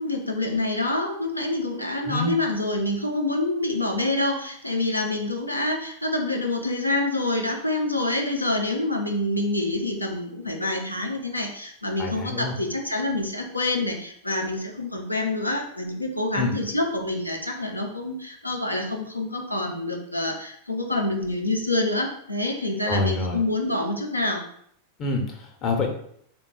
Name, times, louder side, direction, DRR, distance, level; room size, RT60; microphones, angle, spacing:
voice 1, 0.0-24.4, left 2 dB, 90° left, 1 dB, 0.5 m, -27 dB
voice 2, 2.0-2.3 12.0-12.5 16.3-16.5 22.9-23.4 25.0-25.9, left 3 dB, 35° left, 1 dB, 0.7 m, -27 dB
3.5 x 2.2 x 3.7 m, 0.65 s
figure-of-eight pair, 90°, 0 cm